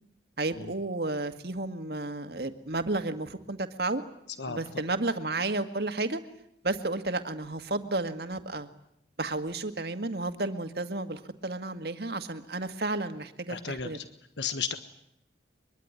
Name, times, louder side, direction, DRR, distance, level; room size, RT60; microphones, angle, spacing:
voice 1, 0.4-4.0 4.5-6.2 6.6-8.7 9.2-14.0, right 2 dB, 60° right, 8 dB, 1.9 m, -32 dB
voice 2, 13.5-14.1 14.4-14.8, left 6 dB, 80° left, 10 dB, 1.4 m, -34 dB
23.5 x 23.0 x 9.7 m, 0.76 s
head